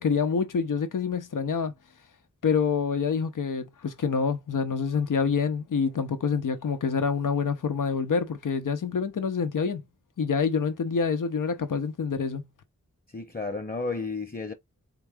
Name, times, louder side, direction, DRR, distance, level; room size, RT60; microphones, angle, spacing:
voice 1, 0.0-1.7 2.4-9.8 10.2-12.4, left 5 dB, 85° left, 0.7 m, -27 dB
voice 2, 13.1-14.5, left 3 dB, 30° left, 0.8 m, -32 dB
3.8 x 3.5 x 3.5 m
cardioid pair, 40°, 31 cm